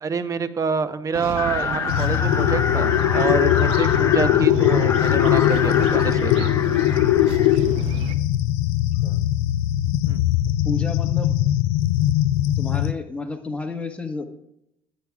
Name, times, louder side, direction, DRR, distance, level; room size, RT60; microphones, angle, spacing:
voice 1, 0.0-6.5 10.1-10.2, right 5 dB, 35° right, 12 dB, 0.8 m, -27 dB
sound 1, 1.1-8.2, right 9 dB, 75° right, 0.7 m, -33 dB
sound 2, 1.4-7.6, left 5 dB, 30° left, 0.6 m, -27 dB
sound 3, 1.9-12.9, left 14 dB, 90° left, 0.4 m, -20 dB
voice 2, 10.6-11.3 12.6-14.2, left 3 dB, 15° left, 4 dB, 1.3 m, -31 dB
12.0 x 8.5 x 2.3 m, 0.80 s
supercardioid pair, 90°, 10 cm